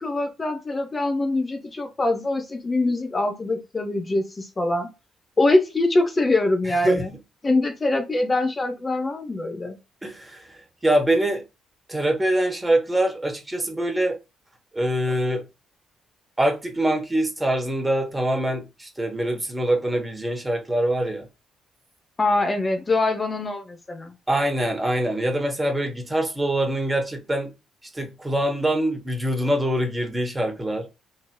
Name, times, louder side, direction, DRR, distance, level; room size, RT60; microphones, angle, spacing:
voice 1, 0.0-4.9 5.4-7.1 7.4-9.8 22.2-24.1, left 2 dB, 30° left, 0.6 m, -23 dB
voice 2, 10.0-10.4 10.8-11.4 11.9-14.2 14.7-15.4 16.4-21.3 24.3-27.5 27.9-30.8, right 1 dB, 20° right, 1.1 m, -24 dB
2.9 x 2.6 x 2.2 m
hypercardioid pair, 50°, 0 cm